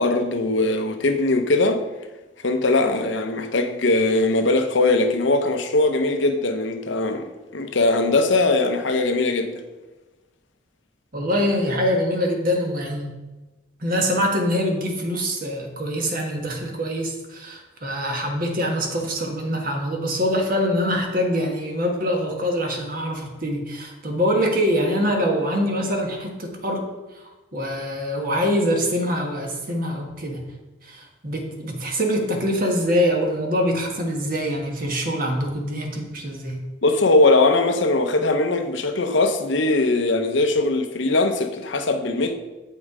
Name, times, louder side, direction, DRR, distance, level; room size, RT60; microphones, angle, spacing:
voice 1, 0.0-1.8 2.4-9.5 36.8-42.4, left 2 dB, 70° left, 0.8 m, -20 dB
voice 2, 11.1-13.2 13.8-26.9 27.5-30.4 30.8-36.6, equal, 45° right, 1.4 m, -24 dB
8.5 x 5.4 x 4.9 m
head